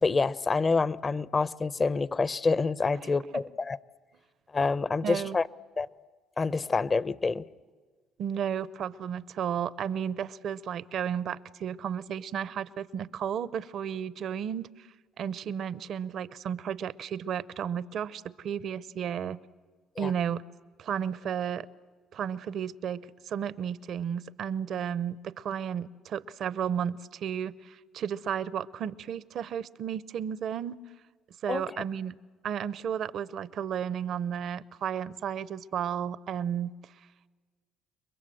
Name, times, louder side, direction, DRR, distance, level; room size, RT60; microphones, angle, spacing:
voice 1, 0.0-3.8 4.5-5.5 5.8-5.9 6.4-7.4 20.0-20.1 31.5-31.8, left 4 dB, 35° left, 0.7 m, -27 dB
voice 2, 5.0-5.4 8.2-14.9 15.2-19.4 20.0-20.4 20.8-21.7 22.1-30.8 31.4-32.2 32.4-36.7, right 8 dB, 60° right, 0.7 m, -33 dB
29.0 x 22.5 x 7.7 m
supercardioid pair, 70°, 0 cm